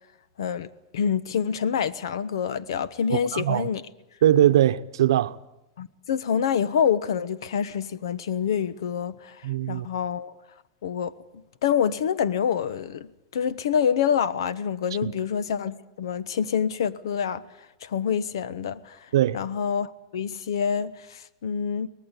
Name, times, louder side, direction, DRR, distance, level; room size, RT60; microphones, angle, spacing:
voice 1, 0.4-3.8 5.8-10.3 10.8-11.1 11.6-17.5 17.8-19.0 19.3-21.9, left 7 dB, 90° left, 1.1 m, -27 dB
voice 2, 3.1-3.7 4.2-5.4 9.4-9.9 15.0-15.1 19.1-19.4, right 12 dB, 85° right, 0.8 m, -21 dB
24.0 x 19.0 x 8.3 m
supercardioid pair, 170°, 2 cm